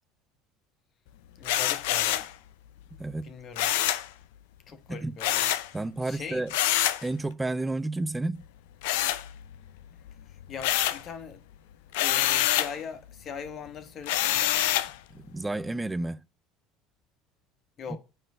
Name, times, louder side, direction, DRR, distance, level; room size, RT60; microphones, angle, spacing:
sound 1, 1.4-2.3 3.6-4.1 5.2-5.7 6.5-7.0 8.8-9.7 10.1-11.1 11.9-12.8 14.1-14.9, left 13 dB, 80° left, 0.5 m, -26 dB
voice 1, 1.4-2.3 3.2-3.7 4.7-5.5 6.0-6.5 10.5-11.4 12.0-14.5 17.8-18.0, left 6 dB, 45° left, 1.3 m, -40 dB
voice 2, 3.0-3.3 4.9-5.2 5.7-6.5 7.0-8.5 15.1-16.2 17.9-18.0, right 2 dB, 15° right, 0.4 m, -31 dB
8.8 x 3.2 x 6.4 m
hypercardioid pair, 85°, 0 cm